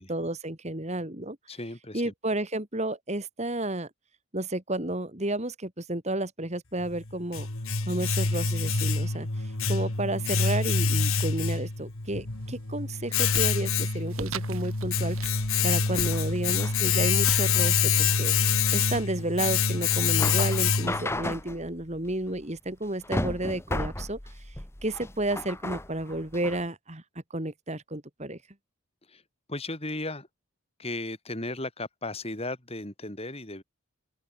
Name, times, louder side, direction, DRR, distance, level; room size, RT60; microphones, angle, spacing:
voice 1, 0.0-1.4 1.9-3.9 4.3-7.5 7.9-24.2 24.5-24.6 24.8-27.0 27.3-28.4, right 1 dB, 30° right, 2.5 m, -32 dB
voice 2, 1.5-2.1 29.1-29.2 29.5-30.3 30.8-33.6, left 2 dB, 25° left, 4.2 m, -35 dB
Domestic sounds home sounds, 6.8-21.2, left 5 dB, 70° left, 2.2 m, -26 dB
sound 1, 12.0-12.5 12.9-19.5, right 4 dB, 75° right, 3.6 m, -44 dB
sound 2, 15.1-26.7, left 1 dB, 10° left, 1.4 m, -36 dB
open air
head